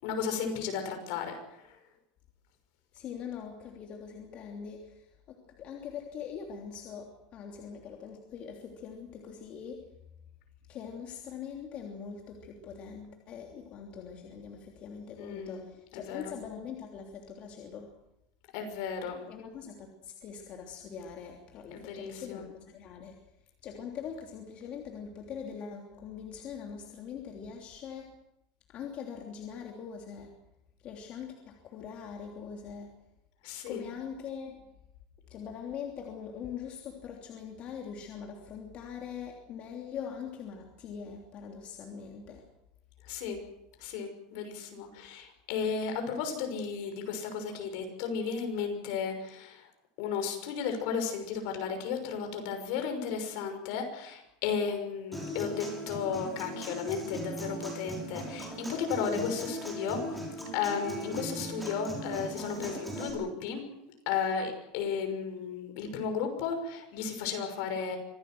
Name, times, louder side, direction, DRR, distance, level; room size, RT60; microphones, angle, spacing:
voice 1, 0.0-1.4 15.2-15.6 15.9-16.3 18.5-19.2 21.7-22.4 33.4-33.9 43.1-43.4 43.8-49.6 50.0-60.0 60.5-63.6 64.1-68.0, left 6 dB, 65° left, 6 dB, 6.2 m, -34 dB
voice 2, 2.9-9.8 10.7-17.9 19.1-23.1 23.6-28.1 28.7-30.3 30.8-32.9 33.7-34.6 35.3-42.4, left 7 dB, 40° left, 1 dB, 3.2 m, -42 dB
Human voice / Acoustic guitar, 55.1-63.1, equal, ahead, 6.7 m, -39 dB
25.5 x 17.5 x 7.9 m, 0.84 s
supercardioid pair, 150°, 3 cm